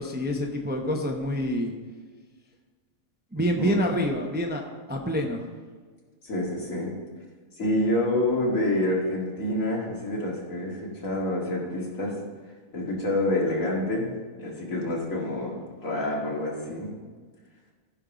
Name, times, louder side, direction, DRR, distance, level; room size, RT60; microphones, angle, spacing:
voice 1, 0.0-1.7 3.3-5.5, equal, 10° right, 2 dB, 0.6 m, -27 dB
voice 2, 3.4-3.8 6.2-7.0 7.6-12.1 12.7-14.1 14.4-16.9, left 1 dB, 80° left, -3 dB, 2.5 m, -27 dB
14.5 x 5.4 x 5.1 m, 1.5 s
omnidirectional pair, 1.4 m